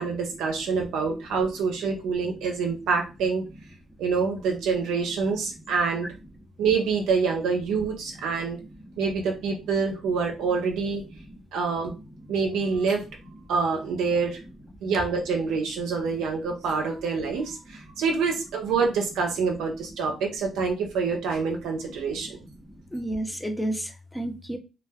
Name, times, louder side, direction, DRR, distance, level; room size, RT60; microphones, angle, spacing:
voice 1, 0.0-3.4 4.0-6.1 6.6-8.6 9.0-11.0 11.5-11.9 12.3-13.0 13.5-14.4 14.8-22.4, right 5 dB, 85° right, 2 dB, 0.5 m, -26 dB
voice 2, 8.6-8.9 11.3-11.4 12.2-12.3 16.5-16.6 17.9-18.0 22.3-24.6, right 1 dB, 5° left, 5 dB, 0.6 m, -33 dB
2.3 x 2.1 x 3.4 m, 0.30 s
cardioid pair, 90°, 0 cm